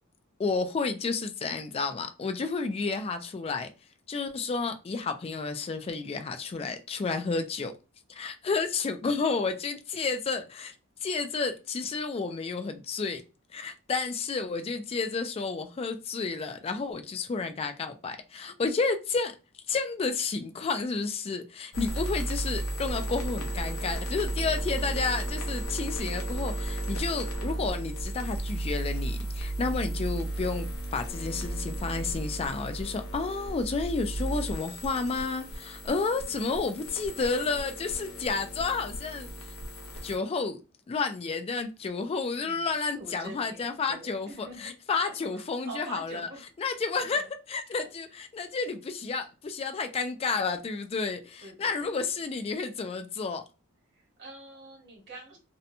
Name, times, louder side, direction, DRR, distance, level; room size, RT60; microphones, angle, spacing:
voice 1, 0.4-3.7 4.1-7.7 8.1-10.7 11.0-13.2 13.5-19.3 19.7-30.7 30.9-39.5 40.0-40.6 40.9-46.3 46.6-53.4, left 4 dB, 25° left, 0.3 m, -31 dB
sound 1, 21.7-40.2, right 1 dB, 80° left, 0.7 m, -34 dB
voice 2, 42.3-46.5 46.9-47.3 47.7-48.2 51.4-52.1 53.9-55.4, right 2 dB, 55° right, 1.2 m, -46 dB
2.7 x 2.1 x 2.6 m
head